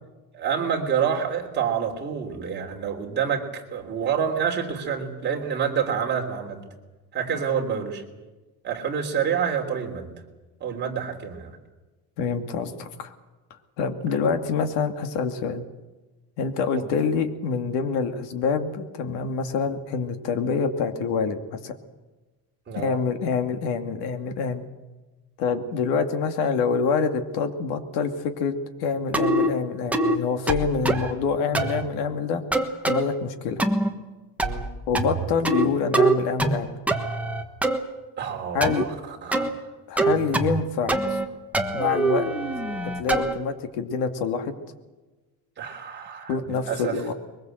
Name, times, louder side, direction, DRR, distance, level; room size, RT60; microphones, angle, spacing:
voice 1, 0.3-6.7 7.1-8.0 8.6-10.1 10.6-11.6 16.7-16.9 22.7-23.0 34.4-34.7 38.2-38.9 39.2-39.6 40.1-40.3 45.6-46.9, right 7 dB, 25° right, 1 dB, 3.4 m, -28 dB
voice 2, 12.2-13.1 13.8-15.6 16.4-21.7 22.8-24.6 25.4-32.4 32.8-33.6 34.9-36.7 38.5-38.8 39.9-41.2 41.7-42.2 42.8-44.5 46.3-47.1, left 5 dB, 90° left, 7 dB, 2.4 m, -26 dB
sound 1, 29.1-29.5 29.9-30.2 30.5-31.1 31.5-31.8 32.5-33.0 33.6-33.9 34.4-34.7 34.9-35.7 35.9-36.6 36.9-37.8 38.6-38.8 39.3-39.5 40.0-40.6 40.9-41.3 41.5-43.3, right 2 dB, 5° right, 1.3 m, -23 dB
22.5 x 21.5 x 7.9 m, 1.2 s
cardioid pair, 180°, 39 cm